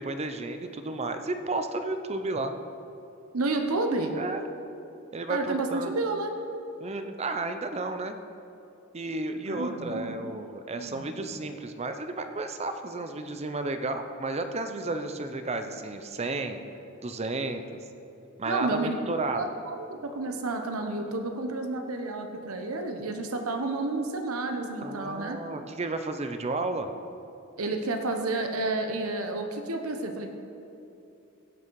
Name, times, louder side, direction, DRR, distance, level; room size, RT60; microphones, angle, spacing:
voice 1, 0.0-2.6 4.1-4.4 5.1-6.0 6.8-8.2 8.9-16.6 17.0-17.6 18.4-19.4 24.8-26.9, right 2 dB, 30° right, 8 dB, 0.6 m, -32 dB
voice 2, 3.3-4.1 5.3-6.3 9.5-10.2 10.7-11.1 18.5-25.4 27.6-30.3, right 2 dB, 80° right, 4 dB, 0.9 m, -31 dB
16.5 x 6.1 x 4.7 m, 2.8 s
head